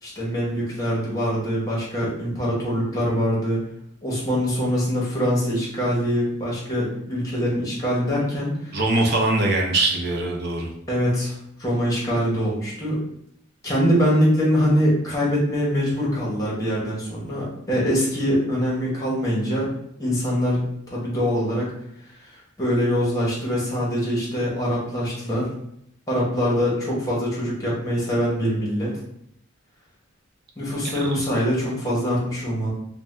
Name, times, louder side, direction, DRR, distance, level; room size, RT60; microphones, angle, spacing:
voice 1, 0.0-3.6 4.0-8.8 10.9-13.0 13.6-19.7 20.0-21.7 22.1-25.5 26.1-29.0 30.6-32.7, equal, 15° left, -5 dB, 1.0 m, -23 dB
voice 2, 8.7-10.7 30.8-31.1, right 2 dB, 50° right, 1 dB, 0.5 m, -22 dB
2.6 x 2.1 x 3.2 m, 0.72 s
head